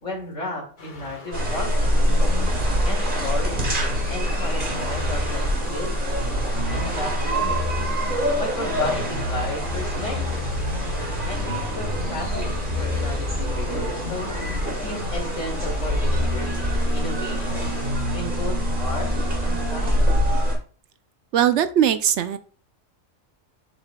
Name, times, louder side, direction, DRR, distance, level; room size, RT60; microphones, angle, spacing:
voice 1, 0.0-1.9 2.8-3.7 4.1-6.3 6.7-8.0 8.3-10.5 11.3-14.3 14.8-16.5 16.9-17.8 18.1-19.1 19.4-20.4, left 1 dB, 75° left, 0 dB, 2.8 m, -34 dB
sound 1, 0.8-17.9, left 3 dB, 40° left, 1.5 m, -43 dB
sound 2, 1.3-20.5, equal, 40° right, 2.4 m, -24 dB
voice 2, 21.3-22.4, right 10 dB, 70° right, 11 dB, 0.8 m, -20 dB
7.7 x 7.1 x 2.3 m, 0.42 s
omnidirectional pair, 1.3 m